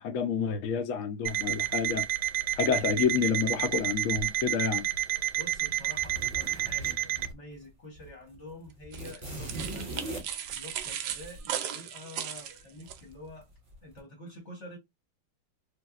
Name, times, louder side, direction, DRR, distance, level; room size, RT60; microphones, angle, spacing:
voice 1, 0.0-2.0 2.6-4.8, left 6 dB, 75° left, 0.7 m, -29 dB
Alarm, 1.3-7.3, right 13 dB, 90° right, 1.4 m, -30 dB
voice 2, 5.3-10.2 10.5-13.5 13.8-14.8, left 1 dB, 45° left, 1.1 m, -47 dB
sound 1, 5.9-7.7 8.0-8.1 8.3-11.4 12.8-13.4 13.7-14.0, right 1 dB, 20° right, 1.1 m, -40 dB
sound 2, 8.9-13.0, right 10 dB, 75° right, 1.0 m, -37 dB
3.3 x 2.7 x 2.4 m
omnidirectional pair, 2.2 m